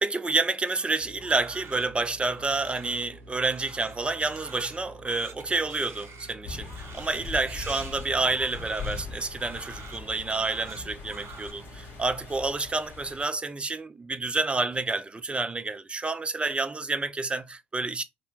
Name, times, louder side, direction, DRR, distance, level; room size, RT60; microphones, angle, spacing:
voice 1, 0.0-18.0, right 3 dB, 20° right, 0.4 m, -29 dB
Crying sobbing, 0.7-11.5, right 4 dB, 45° right, 0.9 m, -47 dB
sound 1, 1.0-12.5, equal, 75° right, 0.8 m, -49 dB
sound 2, 6.4-13.2, left 5 dB, 35° left, 1.4 m, -41 dB
2.8 x 2.2 x 3.2 m
figure-of-eight pair, 50°, 6 cm